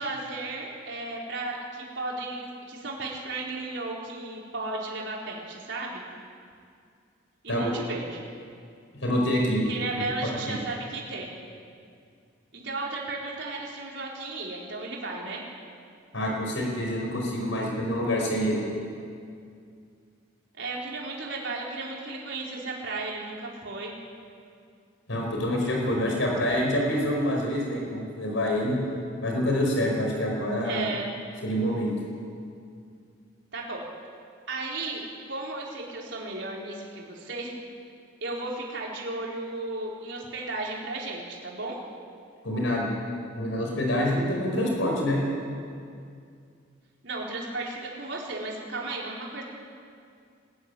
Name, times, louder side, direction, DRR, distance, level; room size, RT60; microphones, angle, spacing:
voice 1, 0.0-6.0 7.4-8.2 9.7-11.3 12.5-15.4 20.6-23.9 30.6-31.1 33.5-33.8 34.5-37.5 38.2-41.8 47.0-49.4, right 2 dB, 70° right, -3 dB, 4.6 m, -34 dB
voice 2, 9.0-9.6 10.4-10.5 16.1-18.6 25.1-28.7 29.2-30.9 31.4-31.9 42.4-42.9 43.4-45.2, equal, 80° left, -1 dB, 4.9 m, -26 dB
21.5 x 14.0 x 10.0 m, 2.3 s
head